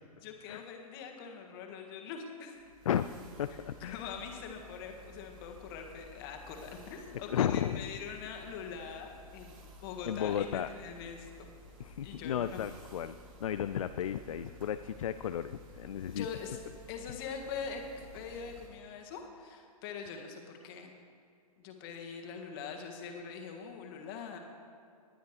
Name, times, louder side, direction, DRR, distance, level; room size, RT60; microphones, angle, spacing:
voice 1, 0.2-2.6 3.8-11.5 12.0-12.6 16.1-16.6 16.9-20.9 21.6-24.4, left 6 dB, 35° left, 3 dB, 1.7 m, -43 dB
sound 1, 2.5-18.7, equal, 25° right, 2.4 m, -54 dB
voice 2, 2.9-4.1 7.3-7.8 10.1-10.7 11.8-16.3, left 9 dB, 60° left, 11 dB, 0.4 m, -34 dB
19.5 x 10.0 x 3.3 m, 2.4 s
figure-of-eight pair, 115°, 20 cm